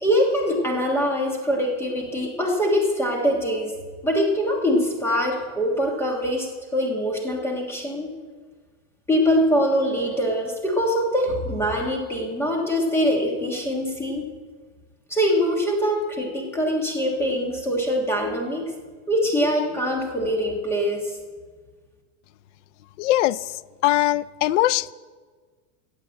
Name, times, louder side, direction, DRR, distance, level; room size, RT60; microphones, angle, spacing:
voice 1, 0.0-3.7 4.0-8.1 9.1-14.3 15.1-18.7 19.1-21.2, equal, 5° left, 1.4 m, -23 dB
voice 2, 23.0-23.4 23.8-24.9, left 15 dB, 65° left, 0.5 m, -20 dB
15.5 x 6.9 x 8.7 m
supercardioid pair, 175°, 40 cm